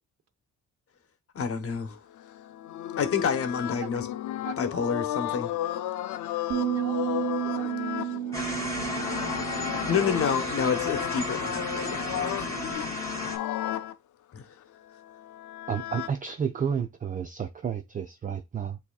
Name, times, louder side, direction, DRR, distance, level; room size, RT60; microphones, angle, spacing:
voice 1, 1.3-2.0 3.0-4.1 4.6-5.5 9.9-12.3 14.3-14.4, left 6 dB, 50° left, 1.0 m, -28 dB
sound 1, 2.2-13.9 15.0-16.1, left 12 dB, 80° left, 0.6 m, -34 dB
voice 2, 4.4-4.8 6.6-9.3, right 11 dB, 55° right, 0.8 m, -46 dB
Bass guitar, 6.5-12.8, right 11 dB, 85° right, 0.5 m, -34 dB
sound 2, 8.3-13.4, left 1 dB, 10° left, 2.0 m, -33 dB
voice 3, 15.7-18.8, right 7 dB, 25° right, 0.4 m, -31 dB
8.1 x 2.8 x 2.3 m
cardioid pair, 90°, 30 cm